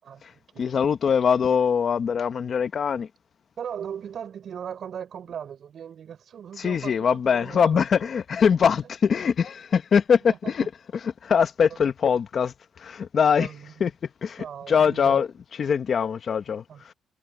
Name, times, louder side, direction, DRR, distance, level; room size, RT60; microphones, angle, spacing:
voice 1, 0.0-0.7 3.6-7.8 10.3-10.7 13.4-13.7 14.4-15.2 16.7-16.8, right 8 dB, 60° right, 6.4 m, -38 dB
voice 2, 0.6-3.1 6.6-10.6 11.2-13.5 13.8-13.9 14.2-16.9, left 7 dB, 50° left, 1.4 m, -23 dB
cardioid pair, 90°, 0 cm